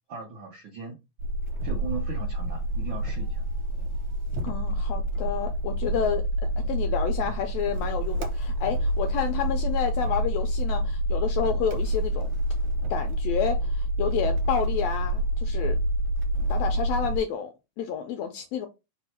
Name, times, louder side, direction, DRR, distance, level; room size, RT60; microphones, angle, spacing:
voice 1, 0.1-1.0 1.6-3.5, right 5 dB, 90° right, 1.0 m, -37 dB
sound 1, 1.2-17.2, right 1 dB, 75° right, 2.0 m, -27 dB
voice 2, 4.4-6.3 6.6-12.3 12.9-15.8 16.5-18.7, left 8 dB, 80° left, 1.5 m, -30 dB
4.6 x 2.1 x 4.2 m
omnidirectional pair, 3.4 m